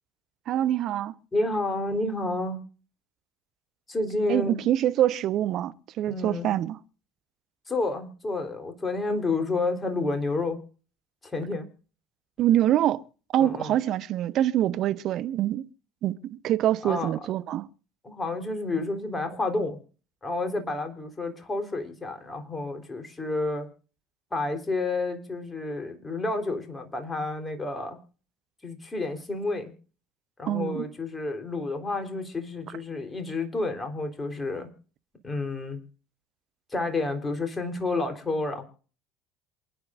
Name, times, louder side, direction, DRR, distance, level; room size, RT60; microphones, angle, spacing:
voice 1, 0.5-1.1 4.3-6.8 12.4-13.0 13.3-15.7 16.0-17.7 30.5-30.8, right 12 dB, 50° right, 0.9 m, -25 dB
voice 2, 1.3-2.6 3.9-4.6 6.1-6.5 7.7-10.6 11.2-11.7 13.4-13.7 16.8-17.1 18.0-19.8 20.2-23.7 24.3-28.0 28.6-29.7 30.4-34.7 35.2-35.8 36.7-38.6, left 2 dB, 20° left, 3.7 m, -30 dB
27.5 x 10.0 x 2.5 m
figure-of-eight pair, 60°, 0 cm